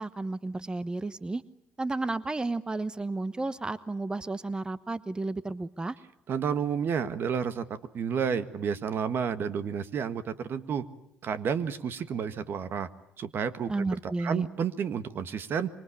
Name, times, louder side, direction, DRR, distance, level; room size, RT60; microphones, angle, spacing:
voice 1, 0.0-1.4 1.8-6.0 13.7-14.5, right 2 dB, 20° right, 15 dB, 1.1 m, -32 dB
voice 2, 6.3-7.6 7.9-10.8 11.2-12.9 13.2-15.7, right 7 dB, 55° right, 12 dB, 1.6 m, -31 dB
25.5 x 24.0 x 8.6 m, 0.79 s
hypercardioid pair, 65°, 4 cm